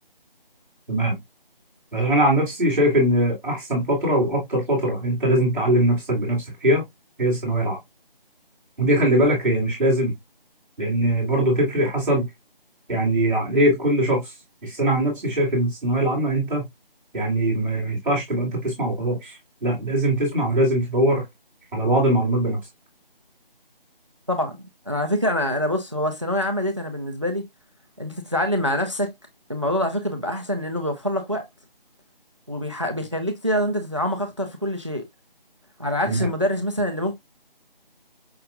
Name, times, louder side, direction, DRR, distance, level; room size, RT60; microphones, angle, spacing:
voice 1, 1.9-6.8 7.2-7.8 8.8-10.1 10.8-12.2 12.9-14.3 14.6-16.6 17.1-21.2 21.7-22.6 36.0-36.3, right 1 dB, ahead, 1.0 m, -21 dB
voice 2, 24.3-27.4 28.0-29.1 29.5-31.4 32.5-35.0 35.8-37.2, left 1 dB, 30° right, 0.5 m, -25 dB
5.6 x 2.6 x 2.5 m
figure-of-eight pair, 170°, 29 cm